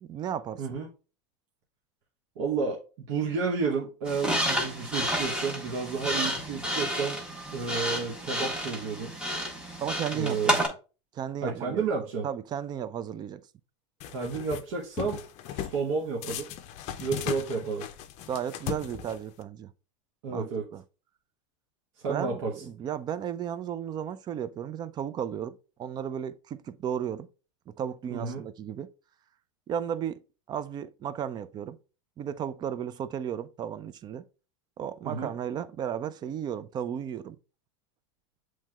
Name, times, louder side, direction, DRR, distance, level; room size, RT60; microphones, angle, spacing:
voice 1, 0.0-0.6 9.8-10.5 11.1-11.9 12.2-13.4 18.3-19.7 20.3-20.8 22.1-27.3 27.7-28.9 29.7-30.2 30.5-31.8 32.2-34.2 34.8-37.4, right 9 dB, 25° right, 0.4 m, -34 dB
voice 2, 2.4-7.3 7.5-9.2 10.1-10.6 11.4-12.3 14.1-15.2 15.6-16.5 17.0-17.8 20.2-20.7 22.0-22.5 28.1-28.5 35.0-35.3, right 5 dB, 60° right, 1.1 m, -31 dB
sound 1, 4.1-10.7, equal, 5° right, 1.2 m, -30 dB
sound 2, 14.0-14.6 15.0-15.8 16.2-19.4, left 11 dB, 45° left, 0.5 m, -37 dB
7.3 x 3.2 x 2.3 m
supercardioid pair, 120°, 16 cm